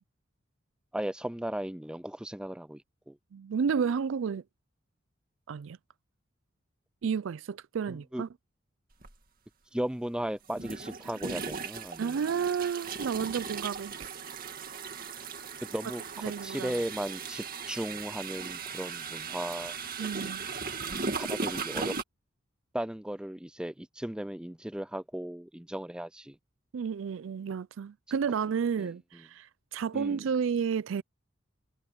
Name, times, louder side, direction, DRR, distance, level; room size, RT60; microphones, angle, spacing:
voice 1, 0.9-3.2 7.9-8.2 9.7-12.2 15.6-20.2 21.2-22.0 22.7-26.4 28.8-28.9 29.9-30.2, right 1 dB, 5° right, 0.4 m, -36 dB
voice 2, 3.3-4.4 5.5-5.8 7.0-8.3 12.0-14.1 16.2-16.7 20.0-20.5 26.7-31.0, right 6 dB, 80° right, 0.4 m, -31 dB
sound 1, 9.0-9.1 10.5-22.0, right 5 dB, 45° right, 2.2 m, -37 dB
head